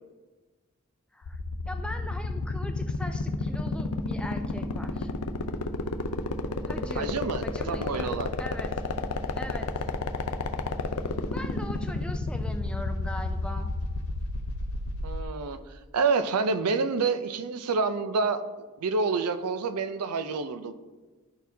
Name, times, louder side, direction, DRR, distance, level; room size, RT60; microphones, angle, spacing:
sound 1, 1.2-15.2, left 3 dB, 90° left, 0.5 m, -30 dB
voice 1, 1.7-5.1 6.7-7.1 7.4-8.1 8.4-8.8 9.4-9.8 11.2-13.7, left 1 dB, 5° left, 6 dB, 0.3 m, -40 dB
voice 2, 6.9-8.3 15.0-15.6 15.9-18.4 18.8-20.7, right 4 dB, 90° right, 11 dB, 0.5 m, -28 dB
11.5 x 4.2 x 2.7 m, 1.3 s
head